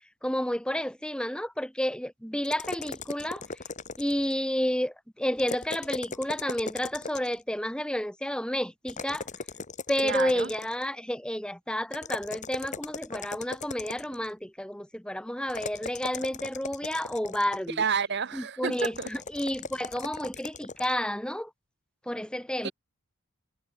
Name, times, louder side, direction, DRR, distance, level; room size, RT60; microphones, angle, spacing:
voice 1, 0.2-3.6 4.0-9.3 9.9-17.8 18.3-21.5 22.1-22.7, equal, 5° left, 1.8 m, -31 dB
sound 1, 2.4-4.3 5.4-7.4 8.9-10.9 11.9-14.3 15.5-17.7 18.7-20.9, left 4 dB, 35° left, 1.4 m, -38 dB
voice 2, 10.0-10.5 17.8-19.1 22.6-22.7, right 6 dB, 50° right, 0.9 m, -30 dB
head